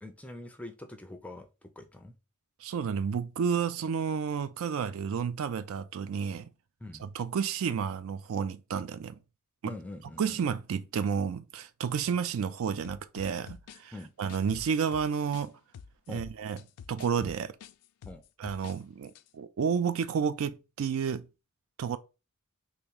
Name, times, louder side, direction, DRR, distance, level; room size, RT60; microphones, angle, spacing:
voice 1, 0.0-2.1 6.8-7.0 9.7-10.4 13.9-14.1 16.1-16.3 18.0-18.2, left 1 dB, 5° left, 0.4 m, -44 dB
voice 2, 2.6-6.5 7.0-9.2 9.6-9.7 10.2-13.9 14.2-15.5 16.1-16.6 16.9-17.5 18.4-21.3 21.8-22.0, right 6 dB, 60° right, 0.3 m, -31 dB
sound 1, 12.8-15.5 15.7-18.8 19.1-19.3, left 7 dB, 85° left, 0.3 m, -47 dB
3.1 x 2.9 x 3.6 m
head